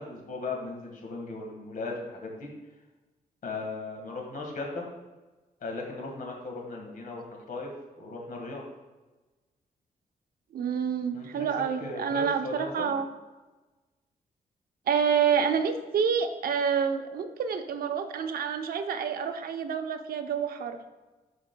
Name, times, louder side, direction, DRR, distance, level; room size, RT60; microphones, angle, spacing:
voice 1, 0.0-2.5 3.4-4.9 5.6-7.7 8.0-8.6 11.1-11.5 11.8-12.9, left 3 dB, 65° left, 0 dB, 1.7 m, -37 dB
voice 2, 10.5-13.1 14.9-20.9, right 7 dB, 85° right, 7 dB, 0.6 m, -28 dB
11.0 x 4.9 x 2.2 m, 1.2 s
wide cardioid pair, 140°, 15 cm